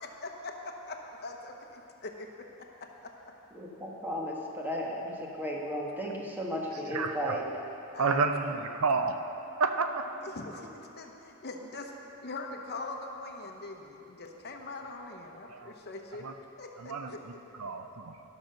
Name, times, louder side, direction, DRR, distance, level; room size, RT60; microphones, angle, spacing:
voice 1, 0.0-3.1 7.9-8.3 8.6-9.0 10.2-11.9 12.2-16.3 16.6-17.2, left 2 dB, 50° left, 2 dB, 0.9 m, -42 dB
voice 2, 3.5-7.5, equal, 10° right, -2 dB, 1.2 m, -35 dB
voice 3, 6.9-7.4 8.0-9.2 9.6-10.1 15.5-15.7 16.2-16.3 16.8-17.1 17.6-18.1, right 4 dB, 75° right, 7 dB, 0.6 m, -29 dB
11.5 x 6.0 x 6.5 m, 3.0 s
head